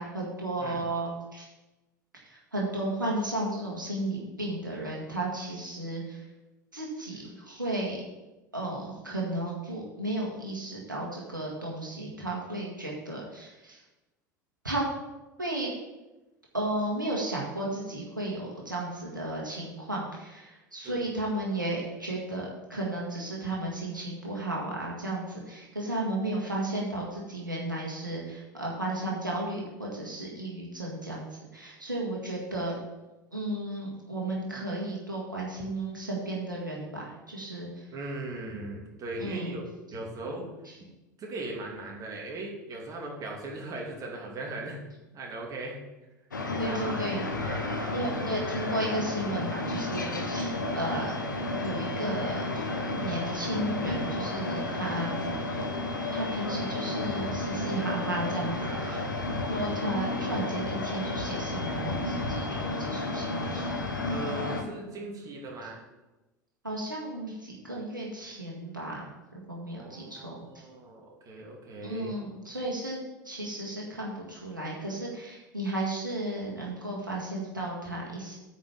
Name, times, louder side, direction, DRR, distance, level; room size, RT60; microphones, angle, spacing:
voice 1, 0.0-1.5 2.1-6.3 6.7-8.0 8.5-13.8 14.6-14.9 15.4-15.7 16.5-32.8 33.3-37.9 39.2-39.6 40.7-40.8 46.6-47.3 47.9-51.1 51.6-52.7 53.0-55.2 56.1-59.0 59.5-63.9 66.6-70.7 71.8-73.0 73.2-78.4, right 1 dB, 90° right, -3 dB, 1.8 m, -34 dB
voice 2, 37.9-39.6 39.9-40.5 41.2-44.8 45.1-45.8 46.5-46.9 47.4-48.3 54.6-54.8 58.6-59.1 64.1-65.8 69.7-72.1, right 2 dB, 35° right, -1 dB, 2.6 m, -39 dB
sound 1, 46.3-64.6, left 2 dB, 80° left, 1.1 m, -32 dB
9.4 x 5.2 x 7.0 m, 1.1 s
figure-of-eight pair, 75°, 10 cm